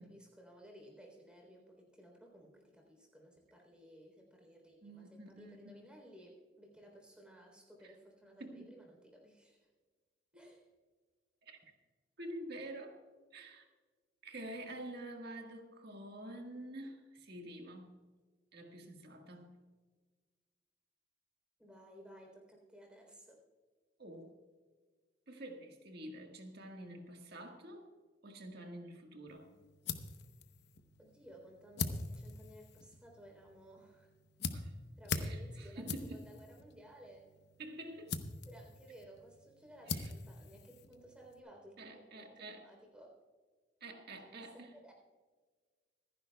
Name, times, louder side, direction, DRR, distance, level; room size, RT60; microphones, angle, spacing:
voice 1, 0.0-9.7 10.3-10.7 21.6-23.4 31.0-34.1 35.0-35.8 36.1-37.4 38.5-43.2 44.2-44.9, equal, 5° right, 0 dB, 3.6 m, -57 dB
voice 2, 4.8-5.8 7.8-7.9 8.4-8.7 10.4-10.5 11.4-11.6 12.2-13.0 13.3-13.7 14.2-17.9 18.5-19.6 24.0-24.3 25.3-27.9 28.2-29.5 34.5-34.7 35.1-36.3 37.6-38.2 39.9-40.1 41.8-42.7 43.8-44.7, right 1 dB, 60° right, 3 dB, 1.7 m, -48 dB
sound 1, 29.3-41.4, left 4 dB, 65° left, 0.9 m, -44 dB
26.0 x 10.5 x 2.3 m, 1.4 s
head